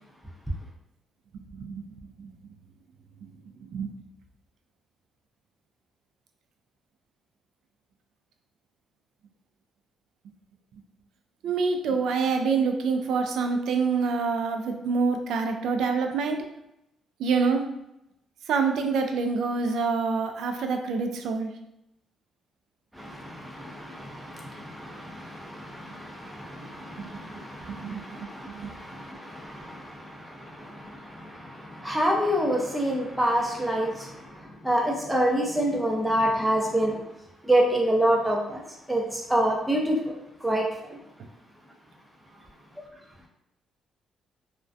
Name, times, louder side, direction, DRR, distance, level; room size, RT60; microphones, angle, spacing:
voice 1, 1.5-2.3 3.7-3.9 11.4-16.4 17.2-17.6 18.5-21.5 27.0-27.1 27.7-28.7, right 5 dB, 80° right, 5 dB, 0.3 m, -26 dB
voice 2, 22.9-37.0 37.4-38.6 38.9-40.0 40.4-41.0, right 1 dB, 5° right, -2 dB, 0.6 m, -27 dB
2.4 x 2.1 x 2.4 m, 0.86 s
cardioid pair, 90°, 0 cm